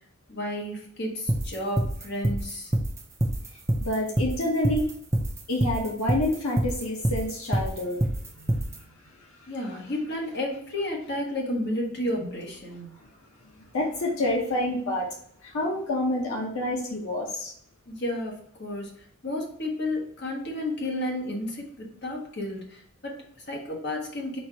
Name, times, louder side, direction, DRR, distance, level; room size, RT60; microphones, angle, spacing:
voice 1, 0.3-2.7 9.5-13.0 17.9-18.9 19.2-24.4, left 1 dB, 50° left, -1 dB, 1.2 m, -32 dB
sound 1, 1.3-8.8, right 1 dB, 10° right, 0.4 m, -25 dB
voice 2, 3.8-4.9 5.5-8.0 8.6-8.7 13.7-15.1 15.4-17.5, left 1 dB, 70° left, -1 dB, 0.9 m, -27 dB
4.3 x 2.6 x 4.5 m, 0.67 s
head